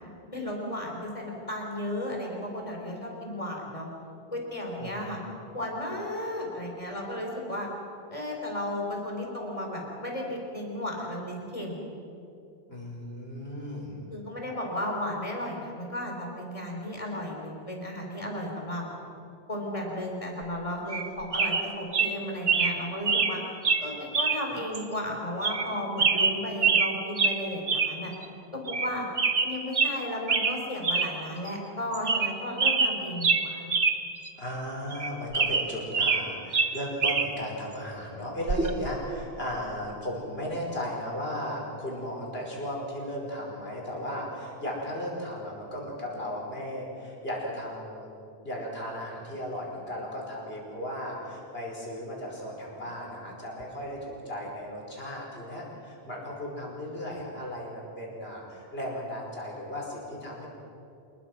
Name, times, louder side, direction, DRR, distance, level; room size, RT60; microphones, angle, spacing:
voice 1, 0.3-3.9 4.3-5.2 5.5-7.7 8.1-11.8 14.1-18.9 19.5-23.4 23.8-28.1 28.5-29.1 29.4-33.7, left 1 dB, 35° left, 0 dB, 4.5 m, -34 dB
voice 2, 4.8-5.2 12.7-14.0 34.4-48.1 48.4-60.5, equal, 70° left, -2 dB, 5.5 m, -36 dB
sound 1, 20.9-21.1 21.3-21.6 21.9-22.1 22.5-22.7 23.1-23.3 23.6-23.8 24.1-24.4 24.7-24.8 25.4-25.7 26.0-26.9 27.2-27.4 27.7-27.9 28.2-28.3 28.7-28.9 29.2-29.9 30.3-30.6 30.8-31.1 31.5-31.6 31.9-32.3 32.6-34.0 34.3-34.4 34.9-36.2 36.5-37.3 38.5-38.7, right 5 dB, 75° right, 1.6 m, -24 dB
27.0 x 21.5 x 6.1 m, 2.7 s
omnidirectional pair, 1.0 m